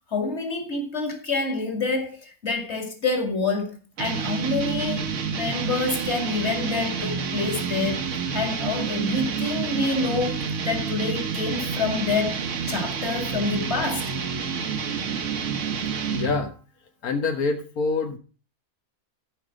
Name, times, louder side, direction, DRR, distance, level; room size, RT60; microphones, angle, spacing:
voice 1, 0.1-5.1 5.3-14.1, left 3 dB, 50° left, 2.5 m, -27 dB
sound 1, 4.0-16.5, right 6 dB, 60° right, 1.2 m, -29 dB
voice 2, 16.1-16.5 17.0-18.2, left 4 dB, 90° left, 1.6 m, -26 dB
14.0 x 5.4 x 5.0 m
omnidirectional pair, 1.5 m